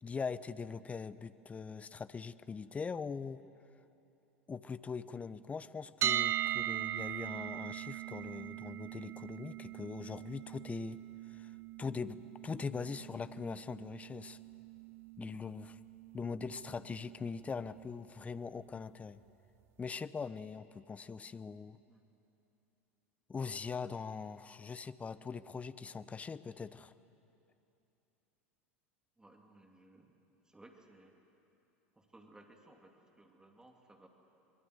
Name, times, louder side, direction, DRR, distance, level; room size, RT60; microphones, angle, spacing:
voice 1, 0.0-3.4 4.5-11.0 11.3-11.5 11.8-14.4 15.2-15.8 16.1-19.2 19.8-21.8 23.3-26.9, left 5 dB, 20° left, 15 dB, 0.8 m, -42 dB
sound 1, 6.0-17.9, right 12 dB, 40° right, 0.5 m, -40 dB
voice 2, 29.2-30.1 30.4-31.1 32.0-34.1, right 2 dB, 10° right, 2 dB, 2.7 m, -60 dB
25.0 x 22.0 x 8.0 m, 2.9 s
figure-of-eight pair, 80°, 7 cm